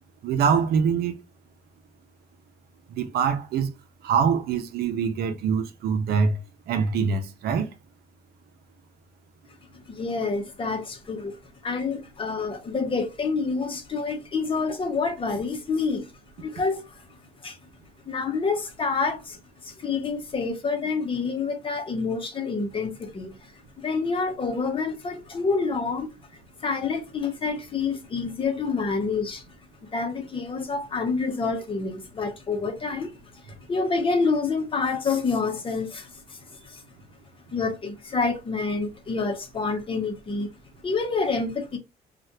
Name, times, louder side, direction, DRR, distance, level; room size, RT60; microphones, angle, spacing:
voice 1, 0.2-1.1 3.0-3.7 4.0-6.4 6.7-7.7, right 6 dB, 70° right, 0.7 m, -24 dB
voice 2, 9.7-11.4 11.6-16.1 16.4-17.0 17.4-17.6 18.1-23.5 23.8-29.4 29.8-36.8 37.5-40.5 40.8-41.8, left 4 dB, 30° left, 0.9 m, -28 dB
3.2 x 2.4 x 2.8 m
cardioid pair, 110°, 17 cm